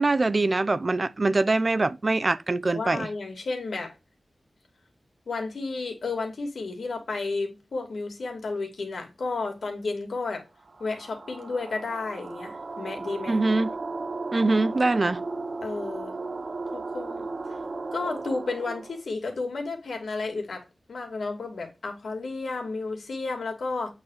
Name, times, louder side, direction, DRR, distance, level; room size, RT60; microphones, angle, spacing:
voice 1, 0.0-3.1 13.3-13.7 14.3-15.2, right 2 dB, 40° right, 0.6 m, -23 dB
voice 2, 2.6-3.9 5.3-10.4 10.8-13.4 15.6-16.1 16.7-17.6 17.9-23.9, left 3 dB, 85° left, 2.6 m, -32 dB
sound 1, 10.6-19.0, right 3 dB, 60° right, 1.4 m, -35 dB
8.5 x 4.2 x 6.5 m
wide cardioid pair, 85°, 0 cm